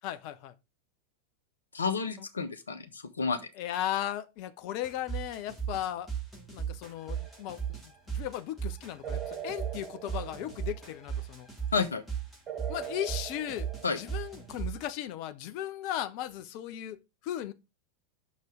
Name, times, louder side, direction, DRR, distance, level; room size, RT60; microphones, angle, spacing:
voice 1, 0.0-0.5 2.2-2.3 3.6-6.1 6.5-11.5 12.7-13.7 14.0-17.5, left 12 dB, 45° left, 0.8 m, -36 dB
voice 2, 1.7-3.4 11.7-12.0 13.8-14.0, left 5 dB, 70° left, 1.1 m, -30 dB
sound 1, 4.8-14.9, right 8 dB, 5° left, 3.1 m, -36 dB
sound 2, 7.1-7.7 9.0-11.1 12.5-14.5, right 9 dB, 25° right, 1.0 m, -43 dB
6.1 x 5.2 x 5.2 m
figure-of-eight pair, 90°, 0 cm